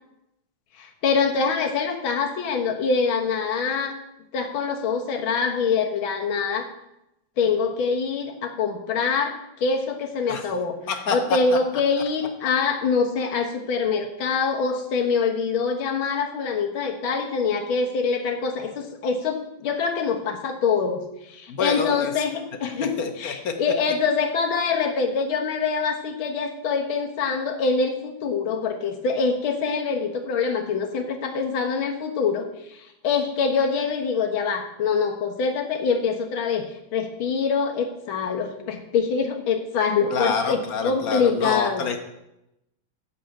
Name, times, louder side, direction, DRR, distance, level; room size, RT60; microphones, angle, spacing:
voice 1, 0.8-4.0 4.3-6.7 7.4-10.7 11.1-36.6 36.9-41.9, left 5 dB, 85° left, 3 dB, 2.1 m, -25 dB
voice 2, 21.5-22.1 23.0-23.5 40.1-42.0, left 5 dB, 50° left, 6 dB, 1.5 m, -27 dB
8.4 x 7.3 x 7.6 m, 0.86 s
omnidirectional pair, 2.1 m